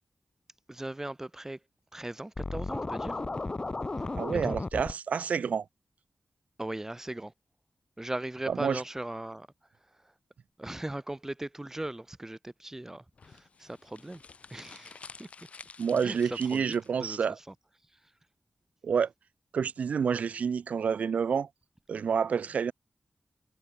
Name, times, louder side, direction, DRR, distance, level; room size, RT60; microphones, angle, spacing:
voice 1, 0.7-1.6 1.9-3.2 4.4-4.6 6.6-7.3 8.0-9.5 10.6-14.2 14.5-15.3 16.0-16.7 17.0-17.2 17.5-17.6, right 1 dB, 20° right, 2.5 m, -38 dB
Scratching (performance technique), 2.4-4.9, left 3 dB, 35° left, 2.3 m, -34 dB
voice 2, 4.2-5.6 8.5-8.8 15.8-17.4 18.8-19.1 19.5-21.5 21.9-22.7, right 6 dB, 90° right, 1.3 m, -28 dB
sound 1, 13.2-17.1, left 5 dB, 65° left, 3.2 m, -50 dB
wide cardioid pair, 75°, 2 cm